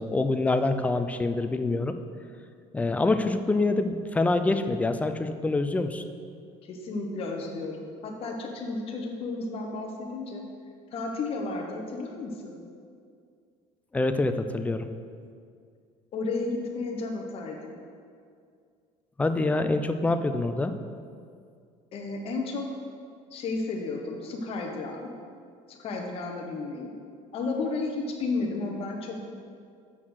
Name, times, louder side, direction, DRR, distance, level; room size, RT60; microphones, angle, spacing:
voice 1, 0.0-2.0 2.7-6.0 13.9-14.9 19.2-20.7, left 2 dB, 10° left, 9 dB, 0.4 m, -26 dB
voice 2, 6.6-10.4 10.9-12.6 16.1-17.7 21.9-22.7 23.3-25.2 25.7-26.9 27.3-29.2, left 3 dB, 45° left, 1 dB, 0.9 m, -33 dB
6.3 x 5.7 x 6.3 m, 2.3 s
cardioid pair, 140°, 14 cm